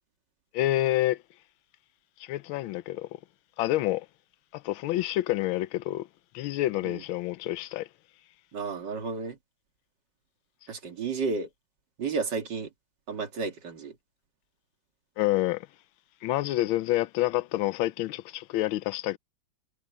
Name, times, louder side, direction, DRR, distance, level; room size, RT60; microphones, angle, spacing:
voice 1, 0.5-1.2 2.2-3.1 3.6-4.1 4.5-6.1 6.3-7.9 15.2-15.7 16.2-19.2, left 16 dB, 80° left, 1.4 m, -28 dB
voice 2, 8.5-9.4 10.7-11.5 12.0-12.7 13.1-13.9, right 4 dB, 60° right, 2.7 m, -32 dB
omnidirectional pair, 2.2 m